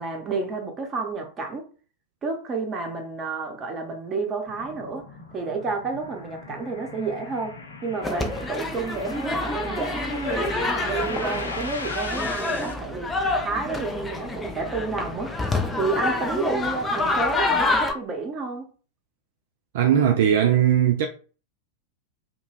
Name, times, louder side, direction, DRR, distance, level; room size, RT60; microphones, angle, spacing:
voice 1, 0.0-1.6 2.2-5.1 5.3-13.2 13.4-15.3 15.8-18.7, right 4 dB, 25° right, 0.7 m, -30 dB
sound 1, 4.4-17.2, left 4 dB, 40° left, 1.1 m, -45 dB
sound 2, 4.9-12.7, left 3 dB, 65° left, 0.6 m, -38 dB
sound 3, 8.0-17.9, left 2 dB, 10° left, 0.4 m, -27 dB
voice 2, 19.7-21.1, right 9 dB, 55° right, 0.3 m, -19 dB
2.2 x 2.1 x 3.2 m
figure-of-eight pair, 90°, 0 cm